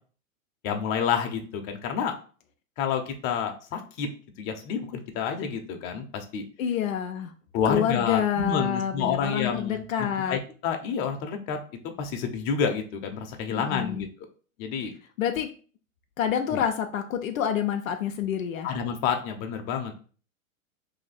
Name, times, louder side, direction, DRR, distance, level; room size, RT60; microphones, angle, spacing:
voice 1, 0.6-2.1 2.8-4.1 4.4-6.4 7.5-11.6 11.8-14.1 14.6-14.9 16.5-16.6 18.6-20.0, left 7 dB, 40° left, 4 dB, 0.8 m, -29 dB
voice 2, 6.6-7.3 7.7-10.4 13.5-14.1 15.2-15.5 16.2-18.7, left 9 dB, 75° left, 5 dB, 0.6 m, -27 dB
2.8 x 2.6 x 4.1 m, 0.40 s
hypercardioid pair, 110°, 41 cm